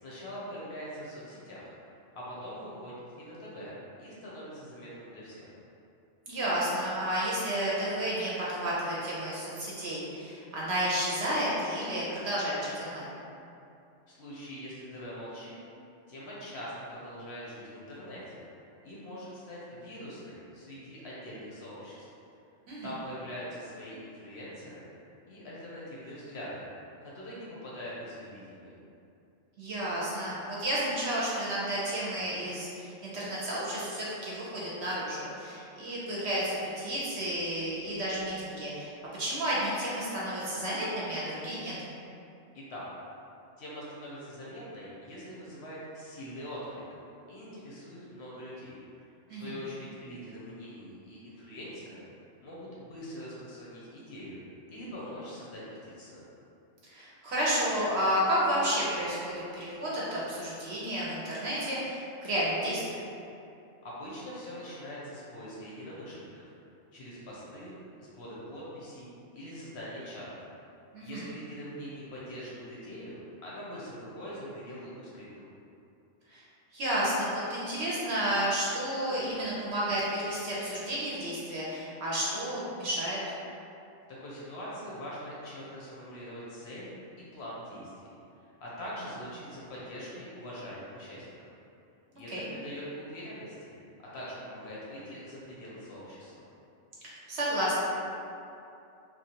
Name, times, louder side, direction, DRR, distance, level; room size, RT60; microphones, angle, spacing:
voice 1, 0.0-1.7 2.1-5.5 14.1-15.6 16.1-18.5 18.8-22.1 22.8-24.9 25.3-26.6 27.0-28.8 42.5-42.8 43.6-46.8 47.3-48.8 49.3-52.0 52.4-54.4 54.7-56.2 63.8-66.4 66.9-67.7 68.0-69.1 69.3-70.4 71.0-75.4 84.1-86.9 87.2-88.1 88.4-91.3 92.1-93.7 94.1-96.4, equal, 65° left, -7 dB, 0.8 m, -43 dB
voice 2, 6.3-13.1 22.7-22.9 29.6-38.9 39.2-41.7 49.3-49.5 56.8-63.0 70.9-71.2 76.3-76.4 76.7-83.2 92.3-92.4 97.0-97.8, equal, 65° right, -6 dB, 0.8 m, -31 dB
3.0 x 2.3 x 2.8 m, 2.6 s
omnidirectional pair, 1.4 m